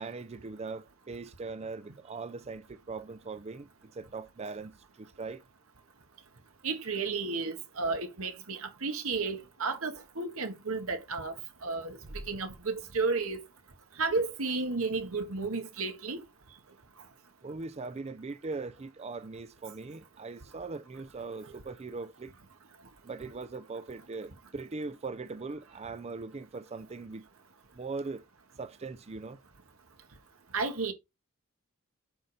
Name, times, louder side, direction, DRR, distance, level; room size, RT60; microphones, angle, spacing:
voice 1, 0.0-5.4 17.4-22.3 23.0-27.3 27.7-28.2 28.6-29.4, right 3 dB, 30° right, 0.4 m, -40 dB
voice 2, 6.6-11.3 11.6-12.0 12.3-13.4 14.0-16.2 30.5-30.9, right 4 dB, 90° right, 1.7 m, -32 dB
7.9 x 5.1 x 4.1 m
head